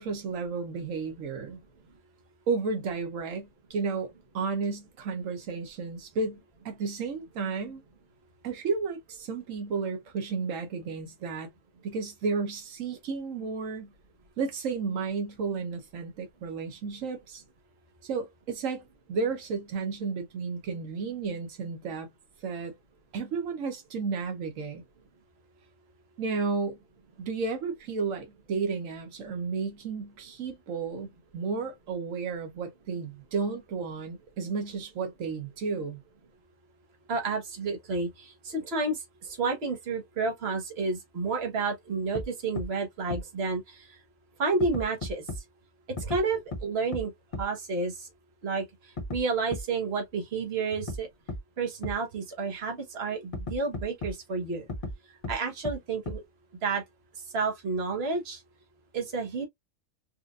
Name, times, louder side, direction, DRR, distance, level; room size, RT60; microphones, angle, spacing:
voice 1, 0.0-1.6 2.5-7.8 8.4-11.5 11.8-13.9 14.4-17.4 18.0-22.1 22.4-22.7 23.1-24.8 26.2-26.8 27.2-36.0, right 4 dB, 85° right, 1.2 m, -32 dB
voice 2, 37.1-43.8 44.4-45.2 46.0-47.1 47.4-48.1 48.4-48.7 49.1-51.1 51.6-54.6 55.3-56.2 56.6-56.8 57.3-58.4 58.9-59.5, right 4 dB, 55° right, 1.4 m, -30 dB
sound 1, 42.1-42.2 42.6-42.7 43.1-43.2 44.6-45.4 46.0-46.2 46.5-46.6 46.9-47.0 47.3-47.4 49.0-49.2 49.5-49.6 50.9-51.0 51.3-51.4 51.8-51.9 53.3-54.1 54.7-54.9 55.2-55.3 55.6-55.7 56.1-56.2, left 2 dB, 35° left, 0.6 m, -34 dB
4.3 x 2.5 x 2.4 m
omnidirectional pair, 1.3 m